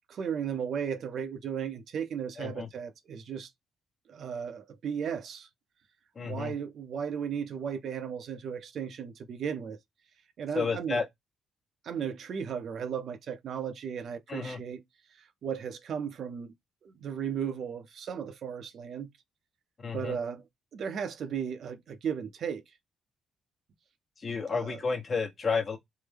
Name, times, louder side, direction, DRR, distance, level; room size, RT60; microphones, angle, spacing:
voice 1, 0.1-3.5 4.1-5.5 6.2-9.8 10.4-11.0 11.8-14.8 15.1-16.5 16.8-19.1 19.9-20.4 20.7-22.6 24.5-24.8, right 7 dB, 60° right, 0.6 m, -35 dB
voice 2, 6.2-6.5 10.5-11.0 14.3-14.6 19.8-20.2 24.2-25.8, left 4 dB, 40° left, 1.0 m, -31 dB
3.4 x 2.1 x 3.3 m
cardioid pair, 90°, 0 cm